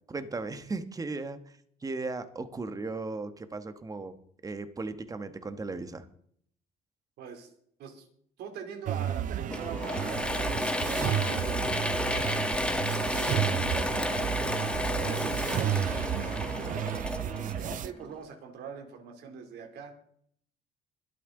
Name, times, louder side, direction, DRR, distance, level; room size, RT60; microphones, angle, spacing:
voice 1, 0.1-1.6 1.8-4.1 4.4-6.1, right 3 dB, 20° right, 10 dB, 1.2 m, -36 dB
voice 2, 7.2-7.5 7.8-8.1 8.4-12.1 12.8-14.5 15.0-19.9, right 6 dB, 75° right, 4 dB, 3.0 m, -43 dB
sound 1, 8.9-17.9, right 11 dB, 50° right, 0.5 m, -32 dB
Mechanisms / Drill, 9.5-18.1, left 1 dB, 5° left, 1.3 m, -32 dB
23.5 x 8.5 x 3.9 m, 0.64 s
cardioid pair, 110°, 17 cm